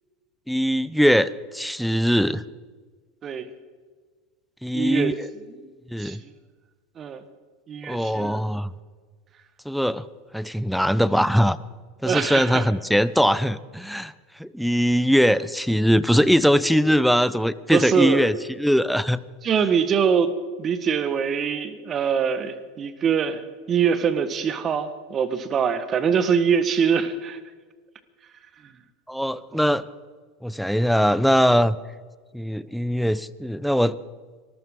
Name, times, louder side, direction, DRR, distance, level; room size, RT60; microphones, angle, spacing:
voice 1, 0.5-2.4 4.6-5.1 5.9-6.2 7.9-8.7 9.7-10.1 10.3-11.6 12.0-14.1 14.4-19.2 29.1-29.8 30.4-31.8 32.3-34.0, equal, ahead, 16 dB, 0.6 m, -21 dB
voice 2, 4.7-5.2 5.5-5.7 6.0-6.2 7.0-7.2 7.7-8.4 12.0-12.7 17.7-18.3 19.4-20.3 20.6-23.4 23.7-27.4 28.6-28.7 29.5-29.7, right 7 dB, 35° right, 12 dB, 1.4 m, -23 dB
25.0 x 14.0 x 3.8 m, 1.5 s
hypercardioid pair, 90°, 0 cm